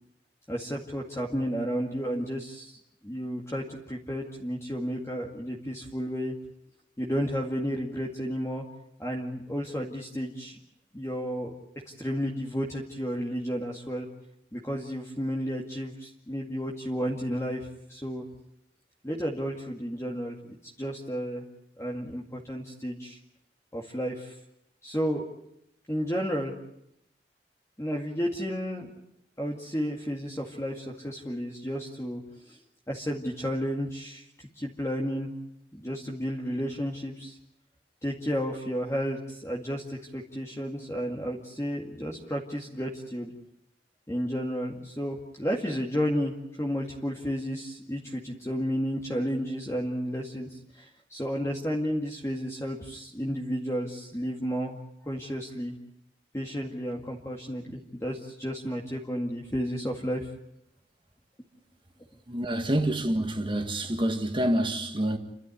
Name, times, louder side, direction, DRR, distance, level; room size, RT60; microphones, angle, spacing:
voice 1, 0.5-6.3 7.0-8.6 9.0-10.6 10.9-11.5 12.0-14.1 14.5-18.3 19.0-20.4 20.8-21.4 21.8-23.2 23.7-24.3 24.8-25.3 25.9-26.5 27.8-28.9 29.4-32.6 32.9-34.2 34.6-35.3 35.7-37.4 38.0-43.3 44.1-50.5 50.8-54.8 55.0-55.8 56.3-60.3, equal, 15° left, 2.1 m, -32 dB
voice 2, 62.3-65.2, right 1 dB, 30° right, 1.8 m, -27 dB
30.0 x 12.5 x 9.7 m
head